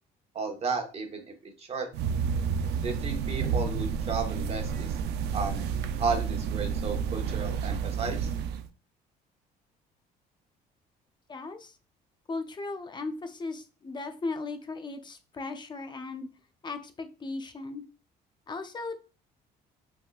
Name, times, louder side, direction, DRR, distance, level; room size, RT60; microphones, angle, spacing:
voice 1, 0.3-1.9 2.8-5.0 5.3-5.7 6.0-8.3, right 4 dB, 35° right, 3 dB, 1.2 m, -33 dB
sound 1, 1.9-8.7, right 6 dB, 75° right, 0.5 m, -30 dB
voice 2, 11.3-11.7 12.3-16.3 16.6-17.8 18.5-19.1, left 3 dB, 25° left, 8 dB, 0.7 m, -37 dB
5.3 x 3.6 x 2.4 m, 0.33 s
cardioid pair, 110°, 17 cm